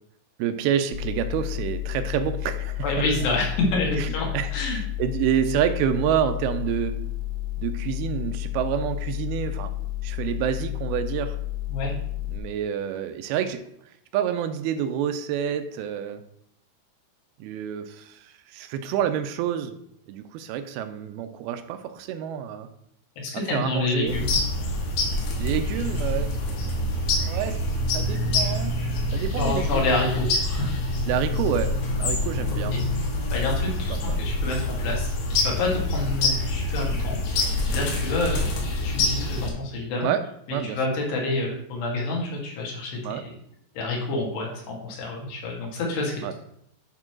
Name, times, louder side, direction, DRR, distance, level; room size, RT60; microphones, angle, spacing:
voice 1, 0.4-3.1 4.0-7.0 7.6-9.7 10.0-11.4 12.3-13.6 14.1-16.2 17.4-19.8 20.1-22.7 23.3-24.2 25.4-26.4 27.2-27.6 27.9-28.8 29.1-29.9 31.1-32.8 33.9-34.3 40.0-40.8 43.0-43.3 46.2-46.3, right 9 dB, 80° right, 9 dB, 2.4 m, -28 dB
sound 1, 0.9-12.4, left 15 dB, 60° right, 1.0 m, -31 dB
voice 2, 2.8-4.8 11.7-11.9 23.2-24.4 29.4-30.7 32.7-32.8 33.3-40.1 40.7-43.3 43.8-46.3, left 2 dB, 85° left, -2 dB, 4.4 m, -28 dB
sound 2, 24.1-39.5, left 2 dB, 70° left, 3.5 m, -26 dB
11.0 x 3.8 x 6.1 m, 0.71 s
omnidirectional pair, 4.7 m